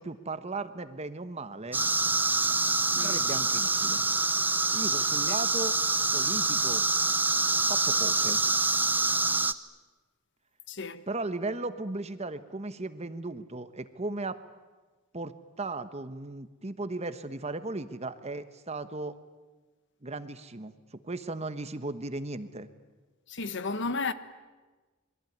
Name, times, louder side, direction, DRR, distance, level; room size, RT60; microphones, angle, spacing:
voice 1, 0.0-1.8 3.0-4.0 4.7-5.8 6.1-6.9 7.7-8.4 11.1-14.4 15.1-19.1 20.0-22.7, right 2 dB, 30° right, 1.2 m, -36 dB
sound 1, 1.7-9.5, right 3 dB, 10° right, 0.8 m, -26 dB
voice 2, 10.7-11.0 23.3-24.1, left 3 dB, 60° left, 1.3 m, -33 dB
27.5 x 22.0 x 9.5 m
head